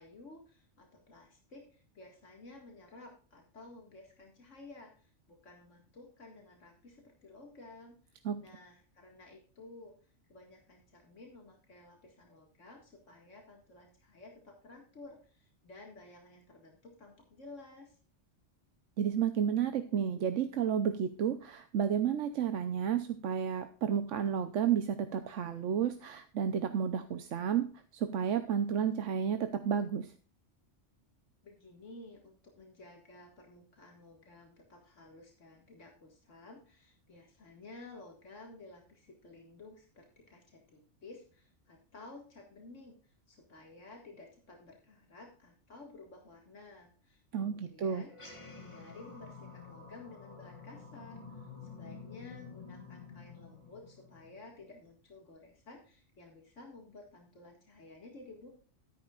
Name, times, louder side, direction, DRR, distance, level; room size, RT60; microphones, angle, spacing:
voice 1, 0.0-9.9 10.3-18.0 31.4-48.3 48.5-58.5, left 2 dB, 85° left, 1 dB, 2.3 m, -54 dB
voice 2, 19.0-27.7 27.9-30.1 47.3-48.0, right 8 dB, 80° right, 9 dB, 1.1 m, -31 dB
sound 1, 48.0-54.8, left 5 dB, 25° left, 2.8 m, -50 dB
13.0 x 10.5 x 2.4 m, 0.41 s
omnidirectional pair, 1.2 m